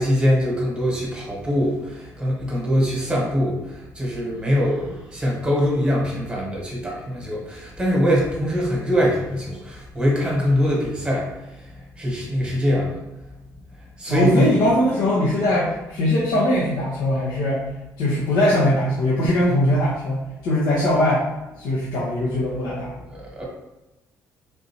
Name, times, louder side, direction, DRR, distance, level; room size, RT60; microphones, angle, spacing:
voice 1, 0.0-11.3 12.0-12.9 14.0-14.7 23.1-23.4, equal, 15° right, -3 dB, 1.2 m, -22 dB
voice 2, 14.1-17.6 18.0-21.2 21.6-22.9, left 1 dB, 70° left, -6 dB, 0.8 m, -21 dB
3.6 x 2.6 x 2.9 m, 0.99 s
cardioid pair, 95°, 7 cm